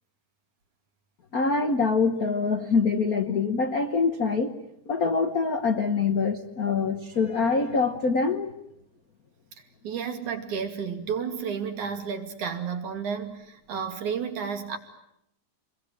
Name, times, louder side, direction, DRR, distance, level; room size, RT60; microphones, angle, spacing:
voice 1, 1.3-4.5 4.9-8.5, left 4 dB, 75° left, 7 dB, 0.8 m, -24 dB
voice 2, 9.8-14.8, right 6 dB, 70° right, 5 dB, 3.9 m, -32 dB
28.5 x 22.5 x 9.1 m, 0.78 s
omnidirectional pair, 3.5 m